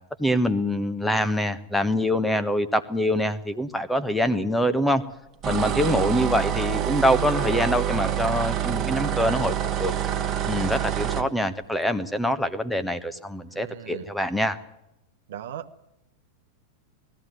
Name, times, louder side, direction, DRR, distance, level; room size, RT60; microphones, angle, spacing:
voice 1, 0.2-5.0 5.4-10.0 10.5-14.6, equal, 5° left, 9 dB, 1.3 m, -25 dB
sound 1, 5.4-11.3, right 10 dB, 30° right, 1.8 m, -26 dB
voice 2, 5.7-6.1 6.9-7.3 13.5-14.1 15.3-15.9, right 10 dB, 60° right, 8 dB, 1.1 m, -39 dB
19.5 x 14.5 x 9.4 m, 0.86 s
figure-of-eight pair, 90°, 0 cm